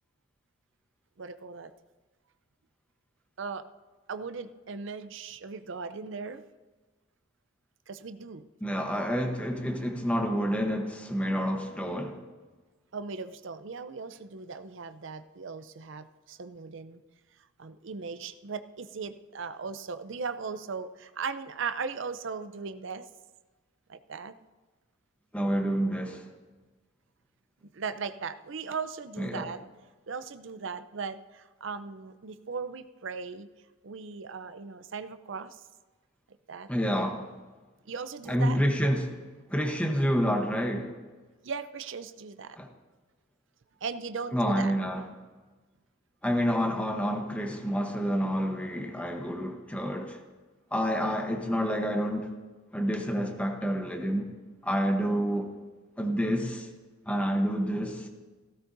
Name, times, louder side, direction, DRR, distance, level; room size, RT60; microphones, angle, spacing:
voice 1, 1.2-1.7 3.4-3.6 4.1-6.4 7.9-8.5 12.9-17.0 17.6-23.0 23.9-24.3 27.6-29.6 30.1-33.5 33.8-35.6 36.5-36.7 37.9-38.6 41.4-42.6 43.8-44.7 56.0-56.2, right 5 dB, 60° right, 0.6 m, -38 dB
voice 2, 8.6-12.2 25.3-26.2 29.2-29.5 36.7-37.4 38.3-39.2 39.5-41.0 42.6-42.7 44.3-45.1 46.2-50.2 50.7-52.3 52.7-54.3 54.6-55.5 56.0-56.7 57.1-58.1, equal, 5° left, 0.9 m, -28 dB
16.0 x 14.0 x 2.6 m
head